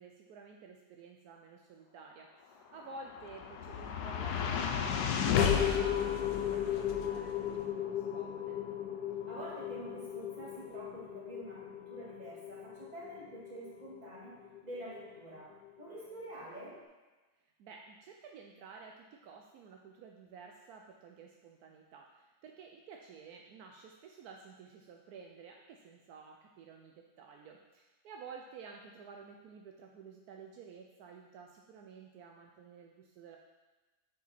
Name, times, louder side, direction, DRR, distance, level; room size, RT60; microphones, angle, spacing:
voice 1, 0.0-8.6 17.6-33.4, right 5 dB, 75° right, 1 dB, 1.1 m, -52 dB
sound 1, 2.8-15.1, left 8 dB, 85° left, 1.1 m, -34 dB
voice 2, 9.3-15.5 15.8-16.8, right 1 dB, 25° right, -6 dB, 1.9 m, -47 dB
6.7 x 5.2 x 4.2 m, 1.2 s
omnidirectional pair, 1.6 m